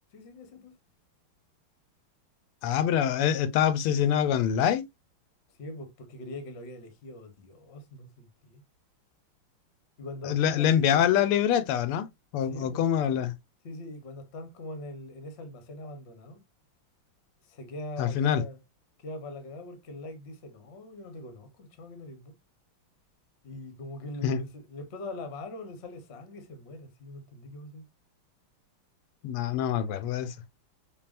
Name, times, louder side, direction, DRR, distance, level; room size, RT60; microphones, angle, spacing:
voice 1, 0.1-0.7 5.6-8.6 10.0-11.3 12.5-12.8 13.6-16.4 17.4-18.6 19.0-22.3 23.4-27.8, left 2 dB, 50° left, 0.7 m, -42 dB
voice 2, 2.6-4.8 10.2-12.1 12.3-13.3 18.0-18.4 24.2-24.4 29.2-30.3, left 9 dB, 90° left, 1.5 m, -25 dB
5.5 x 2.3 x 2.4 m
omnidirectional pair, 2.4 m